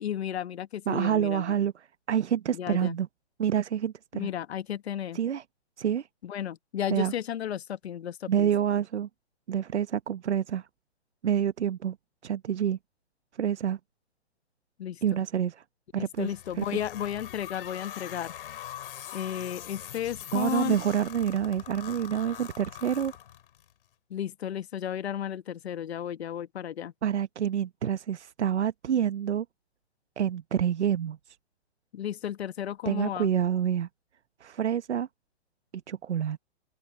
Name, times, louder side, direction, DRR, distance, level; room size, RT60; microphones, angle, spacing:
voice 1, 0.0-1.5 2.5-2.9 4.1-5.2 6.2-8.5 14.8-15.2 16.0-18.3 19.1-20.8 24.1-26.9 31.9-33.3, left 10 dB, 70° left, 1.3 m, -33 dB
voice 2, 0.9-3.1 3.4-4.3 5.1-5.4 5.8-6.1 6.9-7.1 8.3-9.1 9.5-10.7 11.2-12.0 12.2-12.8 13.4-13.8 15.0-15.6 15.9-16.3 16.6-16.7 20.3-23.1 27.0-29.4 30.2-31.4 32.8-33.9 34.4-35.1 35.9-36.4, right 9 dB, 85° right, 1.0 m, -27 dB
sound 1, 16.2-23.7, left 11 dB, 55° left, 6.3 m, -43 dB
open air
hypercardioid pair, 150°, 33 cm